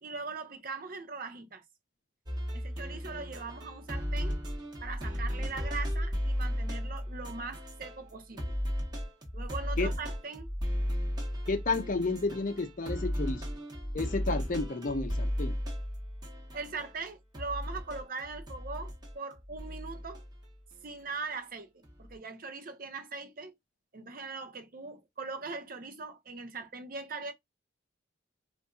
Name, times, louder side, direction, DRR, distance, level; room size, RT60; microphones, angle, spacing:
voice 1, 0.0-1.6 2.5-4.4 4.8-8.6 9.3-10.5 16.5-20.2 20.8-23.5 23.9-27.3, right 4 dB, 45° right, 0.7 m, -40 dB
sound 1, 2.3-8.1 8.4-17.0 17.3-20.5 21.8-22.1, equal, 20° right, 0.9 m, -35 dB
voice 2, 11.5-13.4 13.9-15.6, left 3 dB, 40° left, 0.6 m, -31 dB
4.0 x 2.5 x 2.3 m
head